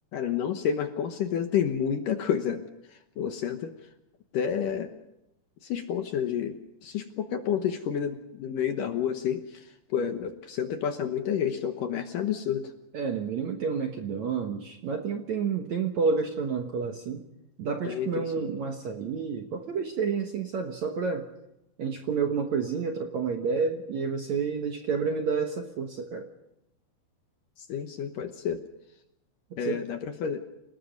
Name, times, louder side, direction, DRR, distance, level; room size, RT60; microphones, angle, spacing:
voice 1, 0.1-2.6 3.2-3.7 4.3-4.9 5.6-9.6 9.9-12.7 17.9-18.5 27.7-28.6 29.6-30.4, left 8 dB, 65° left, 7 dB, 2.3 m, -29 dB
voice 2, 12.9-17.2 17.6-21.3 21.8-26.3 29.5-29.8, right 5 dB, 65° right, 4 dB, 1.9 m, -30 dB
28.5 x 19.0 x 5.3 m, 0.87 s
omnidirectional pair, 4.9 m